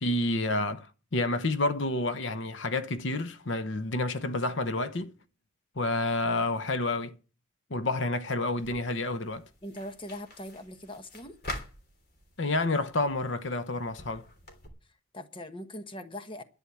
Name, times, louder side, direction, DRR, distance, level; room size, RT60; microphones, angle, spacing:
voice 1, 0.0-5.1 5.8-7.2 7.7-9.4 12.4-14.3, left 2 dB, 70° left, 1.0 m, -29 dB
sound 1, 8.6-14.7, left 1 dB, 50° left, 3.2 m, -46 dB
voice 2, 9.6-11.4 15.1-16.4, left 1 dB, 25° left, 1.1 m, -41 dB
11.5 x 8.9 x 8.5 m
head